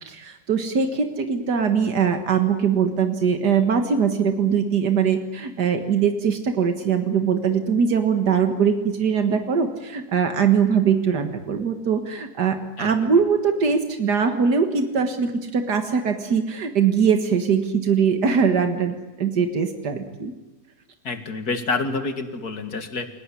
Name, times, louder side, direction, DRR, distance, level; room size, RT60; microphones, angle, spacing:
voice 1, 0.0-20.3, right 6 dB, 85° right, 6 dB, 2.2 m, -21 dB
voice 2, 21.0-23.1, left 3 dB, 70° left, 8 dB, 2.6 m, -27 dB
29.5 x 18.5 x 9.9 m, 1.2 s
omnidirectional pair, 1.7 m